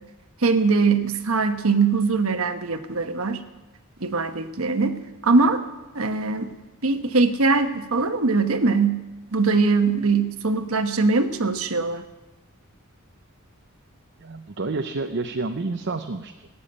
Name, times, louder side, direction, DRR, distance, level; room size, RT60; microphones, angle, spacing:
voice 1, 0.4-3.4 4.0-4.9 5.2-5.6 5.9-6.5 6.8-9.0 9.3-12.0, right 4 dB, 75° right, 9 dB, 1.2 m, -21 dB
voice 2, 14.2-16.5, right 3 dB, 55° right, 6 dB, 0.7 m, -29 dB
16.5 x 8.6 x 9.9 m, 1.1 s
head